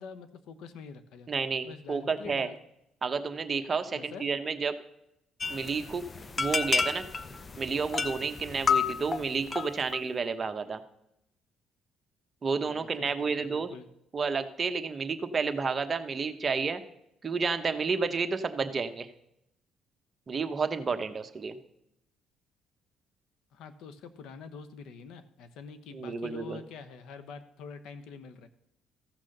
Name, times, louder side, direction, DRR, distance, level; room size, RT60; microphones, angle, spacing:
voice 1, 0.0-2.5 3.9-4.2 12.6-13.9 23.5-28.5, left 5 dB, 80° left, 12 dB, 1.0 m, -46 dB
voice 2, 1.3-2.5 3.0-4.8 5.5-6.0 6.4-7.0 7.6-10.8 12.4-13.7 14.1-16.8 17.2-19.1 20.3-21.6 25.9-26.6, right 5 dB, 30° right, 7 dB, 1.0 m, -31 dB
sound 1, 5.4-10.0, left 5 dB, 30° left, 0.7 m, -31 dB
14.5 x 6.1 x 6.6 m, 0.80 s
cardioid pair, 100°, 0 cm